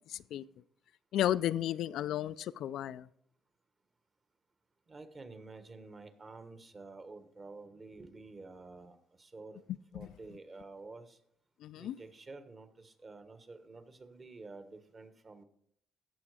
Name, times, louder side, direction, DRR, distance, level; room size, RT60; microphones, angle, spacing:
voice 1, 0.1-0.4 1.1-3.1 9.9-10.1 11.6-12.0, left 12 dB, 70° left, 0.4 m, -33 dB
voice 2, 4.9-9.6 9.9-11.2 11.7-15.4, right 3 dB, 25° right, 1.3 m, -50 dB
16.0 x 7.1 x 4.9 m
cardioid pair, 130°, 0 cm